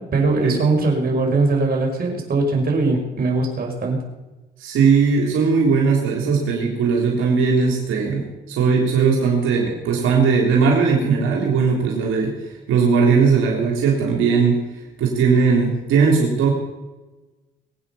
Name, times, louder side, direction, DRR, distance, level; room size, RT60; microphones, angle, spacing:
voice 1, 0.0-4.0, right 3 dB, 50° right, 1 dB, 5.6 m, -20 dB
voice 2, 4.6-12.3 12.7-14.6 15.0-16.5, right 5 dB, 85° right, -1 dB, 3.5 m, -18 dB
23.0 x 8.9 x 7.0 m, 1.1 s
cardioid pair, 90°, 20 cm